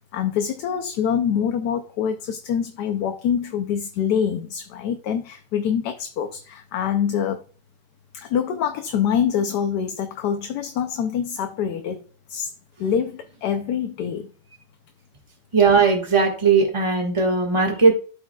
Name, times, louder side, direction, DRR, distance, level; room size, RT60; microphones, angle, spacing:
voice 1, 0.1-7.4 8.1-12.0 12.3-12.5 12.8-14.3, left 8 dB, 75° left, 1.2 m, -25 dB
voice 2, 15.5-17.9, right 4 dB, 20° right, 1.5 m, -18 dB
12.5 x 4.9 x 2.3 m
omnidirectional pair, 1.9 m